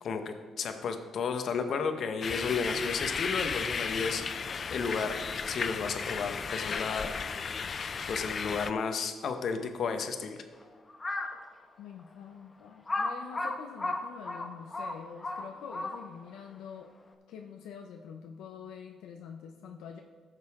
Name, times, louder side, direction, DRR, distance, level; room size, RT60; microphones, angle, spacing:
voice 1, 0.0-4.3 4.7-7.1 8.1-10.4, left 5 dB, 60° left, 7 dB, 1.0 m, -33 dB
sound 1, 2.2-8.7, left 5 dB, 45° left, 0.4 m, -34 dB
Crow, 10.9-11.4 12.0-12.1 12.9-16.3, left 2 dB, 25° left, 1.0 m, -34 dB
voice 2, 11.8-16.9 17.3-20.0, left 7 dB, 90° left, 2 dB, 0.6 m, -46 dB
15.5 x 6.6 x 3.6 m, 1.5 s
cardioid pair, 90°, 0 cm